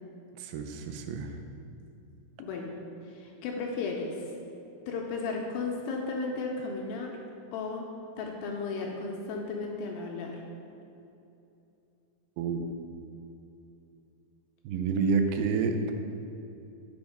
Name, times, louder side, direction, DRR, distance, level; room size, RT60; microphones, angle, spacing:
voice 1, 0.4-1.3 12.4-12.6 14.6-15.9, right 5 dB, 90° right, 6 dB, 2.5 m, -28 dB
voice 2, 2.4-2.8 3.1-4.3 4.9-7.1 7.5-7.9 8.2-10.4, left 4 dB, 80° left, 0 dB, 2.2 m, -34 dB
6.9 x 3.5 x 5.1 m, 2.7 s
omnidirectional pair, 4.4 m